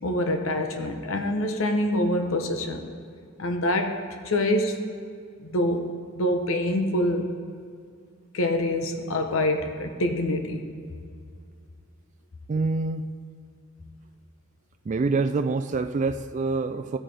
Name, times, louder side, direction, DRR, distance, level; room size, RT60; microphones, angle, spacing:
voice 1, 0.0-2.9 3.4-4.0 4.2-4.8 5.4-7.4 8.3-10.7, left 1 dB, 80° left, 5 dB, 0.9 m, -26 dB
voice 2, 12.5-13.1 14.9-17.0, right 3 dB, 35° right, 8 dB, 0.3 m, -26 dB
15.0 x 8.9 x 3.4 m, 2.2 s
head